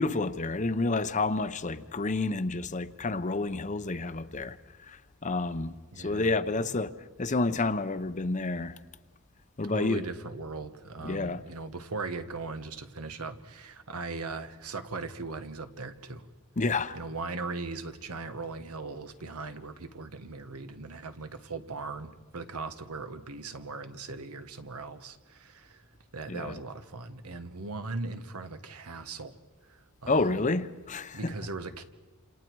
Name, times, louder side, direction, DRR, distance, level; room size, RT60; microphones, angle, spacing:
voice 1, 0.0-4.6 4.9-6.9 7.2-8.8 9.6-10.0 11.0-11.4 16.6-17.0 26.3-26.6 30.1-31.3, left 3 dB, 35° left, 0.7 m, -29 dB
voice 2, 5.9-6.7 9.6-16.3 16.9-25.9 26.1-29.4 29.6-30.5 31.1-31.8, right 3 dB, 90° right, 1.3 m, -39 dB
28.5 x 27.5 x 4.7 m
head